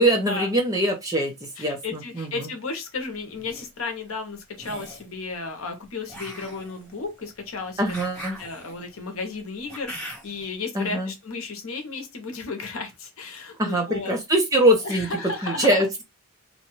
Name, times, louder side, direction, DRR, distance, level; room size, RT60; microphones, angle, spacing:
voice 1, 0.0-2.5 7.8-8.4 10.7-11.1 13.6-15.1 15.4-16.0, right 1 dB, 15° right, 0.6 m, -23 dB
voice 2, 1.6-7.9 8.4-14.1 14.8-16.0, left 3 dB, 65° left, 0.8 m, -34 dB
sound 1, 3.2-3.7 4.5-5.1 6.1-10.5, equal, 5° left, 1.1 m, -41 dB
2.6 x 2.3 x 2.9 m
head